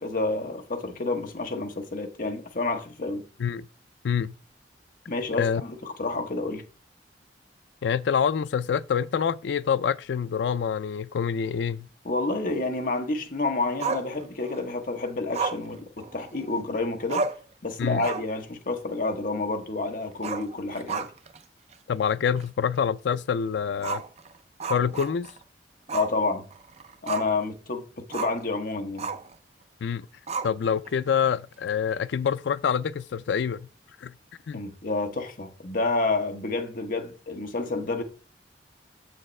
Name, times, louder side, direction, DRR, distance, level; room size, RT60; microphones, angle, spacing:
voice 1, 0.0-3.2 5.1-6.6 12.0-17.3 17.6-21.1 25.9-26.4 27.0-29.1 34.5-38.0, left 3 dB, 50° left, 1.1 m, -29 dB
voice 2, 7.8-11.9 17.8-18.0 21.9-24.0 24.7-25.3 29.8-30.1 30.4-33.7 34.0-34.1 34.5-34.6, left 7 dB, 70° left, 0.4 m, -26 dB
Growling, 13.8-14.6 15.3-16.6 16.8-16.9 17.1-17.5 17.9-18.4 18.7-18.8 20.1-21.4 21.7-21.8 22.4-22.5 23.8-25.4 25.9-26.2 26.5-27.4 28.1-28.4 29.0-29.3 30.3-30.9, right 4 dB, 35° right, 0.4 m, -32 dB
7.2 x 6.5 x 3.2 m
head